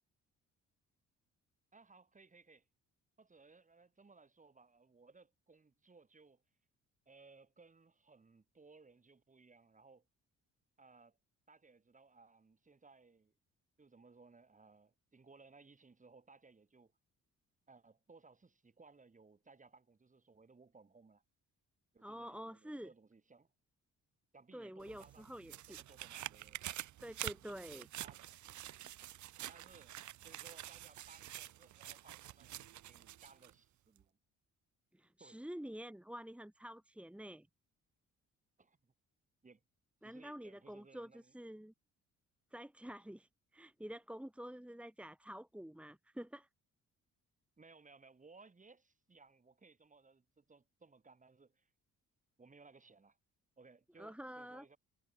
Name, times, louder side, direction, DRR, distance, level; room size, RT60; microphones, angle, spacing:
voice 1, 1.7-2.7 3.2-6.4 7.1-10.1 10.8-11.2 11.5-13.3 13.8-16.9 17.7-21.2 21.9-23.5 24.3-26.6 28.0-28.2 29.5-29.9 30.2-34.2 35.2-35.4 38.6-38.9 39.4-39.6 40.0-41.3 47.6-51.7 52.4-53.2 53.6-54.8, right 4 dB, 25° right, 3.5 m, -62 dB
voice 2, 22.0-22.9 24.5-25.8 27.0-27.9 34.9-37.5 40.0-41.7 42.5-46.5 54.0-54.6, equal, 5° right, 1.6 m, -48 dB
sound 1, 24.8-33.5 34.0-34.1, right 13 dB, 70° right, 1.3 m, -48 dB
cardioid pair, 90°, 30 cm